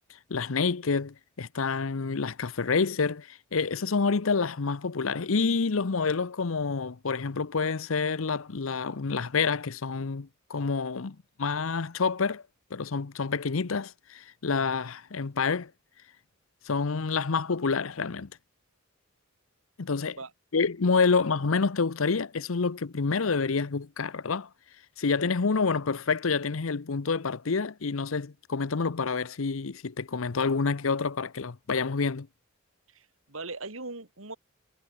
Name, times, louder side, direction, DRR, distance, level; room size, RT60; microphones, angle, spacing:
voice 1, 0.3-12.4 12.7-15.7 16.7-18.3 19.8-20.2 20.5-24.5 25.0-32.3, left 4 dB, 70° left, 0.8 m, -28 dB
voice 2, 32.9-34.4, right 3 dB, 70° right, 3.5 m, -39 dB
head